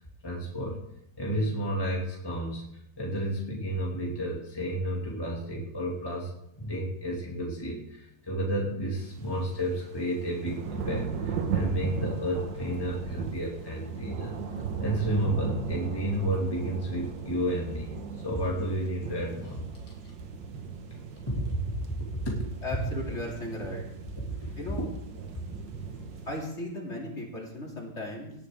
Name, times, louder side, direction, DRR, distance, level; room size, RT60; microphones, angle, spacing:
voice 1, 0.2-0.8 1.2-2.7 3.0-14.4 14.8-17.9 18.2-19.7 21.3-21.7 22.1-22.5 24.2-24.5, equal, 15° left, -3 dB, 2.3 m, -31 dB
sound 1, 9.0-26.4, right 6 dB, 85° right, 2.0 m, -37 dB
voice 2, 22.6-23.9 24.6-24.8 26.3-28.3, left 1 dB, 40° left, -2 dB, 3.1 m, -36 dB
17.5 x 11.0 x 3.7 m, 0.77 s
omnidirectional pair, 1.9 m